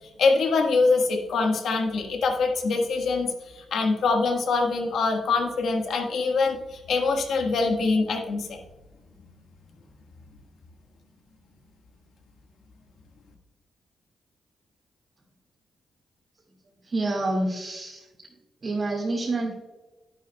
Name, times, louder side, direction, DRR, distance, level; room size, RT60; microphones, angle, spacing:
voice 1, 0.2-8.6, left 4 dB, 75° left, 2 dB, 1.5 m, -24 dB
voice 2, 16.8-18.1 18.6-19.5, right 2 dB, 40° right, -4 dB, 2.0 m, -27 dB
11.0 x 10.5 x 2.3 m, 1.1 s
cardioid pair, 85°, 0 cm